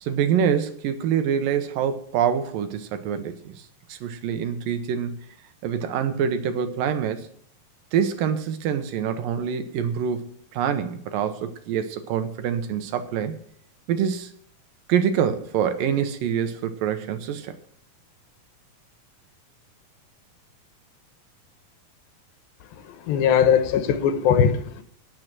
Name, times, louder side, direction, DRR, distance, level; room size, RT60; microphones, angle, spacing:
voice 1, 0.0-3.6 3.9-5.2 5.6-7.2 7.9-13.4 13.9-14.3 14.9-17.5, right 8 dB, 75° right, 9 dB, 2.5 m, -25 dB
voice 2, 23.0-24.8, left 8 dB, 80° left, 10 dB, 2.8 m, -20 dB
17.0 x 6.6 x 6.0 m, 0.63 s
omnidirectional pair, 4.2 m